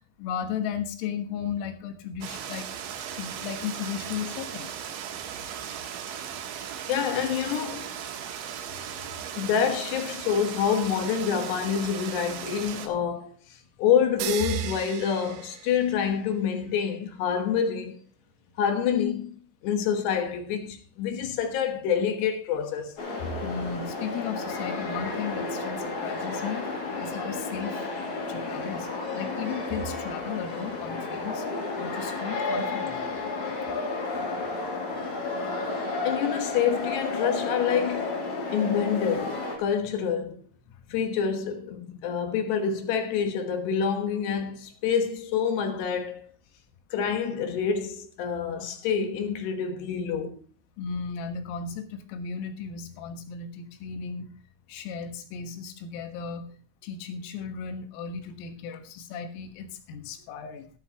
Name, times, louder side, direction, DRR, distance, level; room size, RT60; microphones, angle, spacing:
voice 1, 0.0-2.7 3.1-4.9 23.4-26.7 27.0-27.9 28.2-28.9 29.1-31.5 31.7-33.1 33.5-33.7 34.3-34.5 35.2-35.3 40.7-41.0 50.8-54.3 54.7-56.5 56.8-60.7, left 7 dB, 85° left, 4.1 m, -35 dB
sound 1, 2.2-12.9, right 9 dB, 70° right, 3.4 m, -37 dB
voice 2, 6.9-7.9 9.4-13.3 13.8-18.0 18.6-19.4 19.6-22.9 23.2-23.3 36.0-38.2 38.5-40.4 40.9-46.3 46.9-50.4, left 7 dB, 70° left, 3.1 m, -27 dB
sound 2, 14.2-16.3, right 12 dB, 90° right, 3.5 m, -36 dB
sound 3, 23.0-39.6, left 3 dB, 40° left, 3.8 m, -32 dB
13.5 x 12.5 x 2.9 m
omnidirectional pair, 5.8 m